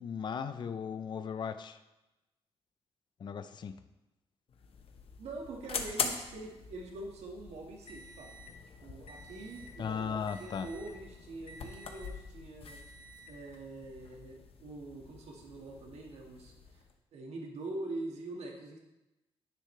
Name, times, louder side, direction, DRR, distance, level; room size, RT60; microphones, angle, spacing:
voice 1, 0.0-1.8 3.2-3.8 9.8-10.7, left 7 dB, 45° left, 10 dB, 0.5 m, -37 dB
sound 1, 4.5-16.9, left 5 dB, 60° left, 1.0 m, -44 dB
voice 2, 5.2-8.5 8.8-12.8 13.3-16.8 17.1-18.8, right 2 dB, 80° right, 0 dB, 1.8 m, -44 dB
10.0 x 9.6 x 3.3 m, 1.0 s
wide cardioid pair, 130°, 11 cm